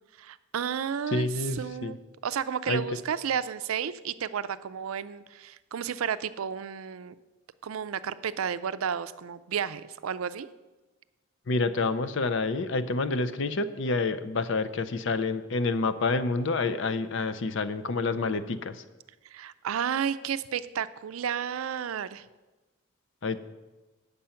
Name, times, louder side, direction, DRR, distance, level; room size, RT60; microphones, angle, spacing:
voice 1, 0.2-1.3 1.6-2.0 2.2-7.2 7.6-10.5 19.3-22.2, right 8 dB, 85° right, 14 dB, 0.4 m, -32 dB
voice 2, 1.1-2.0 2.7-2.8 11.5-18.8 23.2-23.4, left 3 dB, 60° left, 12 dB, 0.5 m, -28 dB
8.8 x 6.8 x 5.7 m, 1.2 s
head